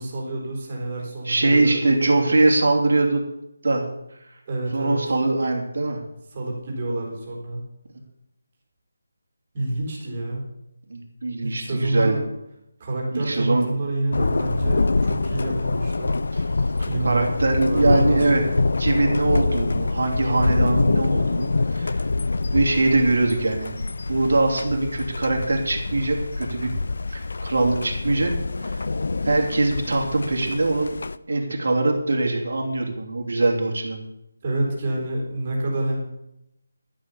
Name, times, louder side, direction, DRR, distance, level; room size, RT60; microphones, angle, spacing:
voice 1, 0.0-2.3 4.5-5.1 6.3-7.6 9.5-10.4 11.4-12.2 12.8-16.2 16.5-17.4 17.6-18.4 34.4-36.0, right 2 dB, 25° right, -2 dB, 3.8 m, -28 dB
voice 2, 1.2-3.2 3.6-3.9 4.7-6.0 10.9-12.2 13.1-13.7 16.3-16.4 17.0-18.4 18.8-22.0 22.5-23.7 24.1-26.7 27.1-28.3 28.6-28.9 29.2-31.0 31.3-34.0, right 2 dB, 65° right, 1 dB, 3.0 m, -22 dB
Thunder, 14.1-31.2, left 3 dB, 60° left, 0.5 m, -25 dB
12.5 x 7.8 x 7.1 m, 0.84 s
figure-of-eight pair, 175°, 0 cm